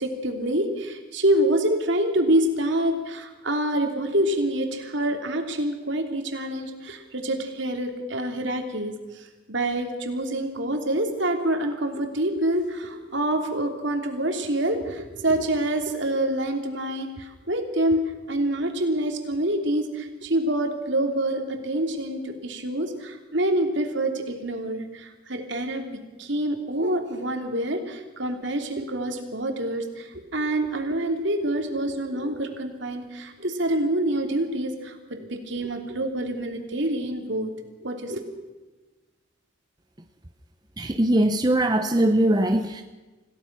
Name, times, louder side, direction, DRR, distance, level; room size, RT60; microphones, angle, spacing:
voice 1, 0.0-37.5 37.8-38.4, right 1 dB, 60° right, 4 dB, 3.1 m, -26 dB
voice 2, 40.8-42.8, right 1 dB, 20° right, 6 dB, 0.8 m, -21 dB
27.0 x 16.5 x 6.1 m, 1.2 s
head